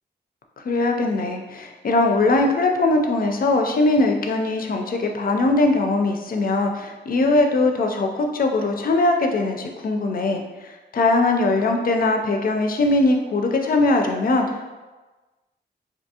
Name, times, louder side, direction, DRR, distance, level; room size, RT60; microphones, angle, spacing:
voice 1, 0.6-14.7, left 2 dB, 55° left, 3 dB, 0.4 m, -21 dB
3.4 x 2.6 x 2.7 m, 1.2 s
wide cardioid pair, 155°, 18 cm